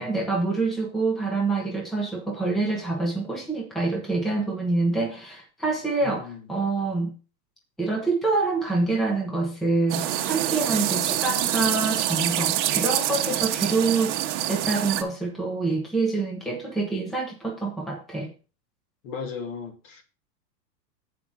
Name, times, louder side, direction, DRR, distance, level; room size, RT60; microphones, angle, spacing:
voice 1, 0.0-7.1 7.8-18.3, right 3 dB, ahead, 0.8 m, -26 dB
voice 2, 6.0-6.4 19.0-20.0, left 5 dB, 50° left, 2.6 m, -36 dB
sound 1, 9.9-15.0, right 12 dB, 45° right, 1.2 m, -26 dB
8.1 x 5.0 x 6.0 m
hypercardioid pair, 150°, 50 cm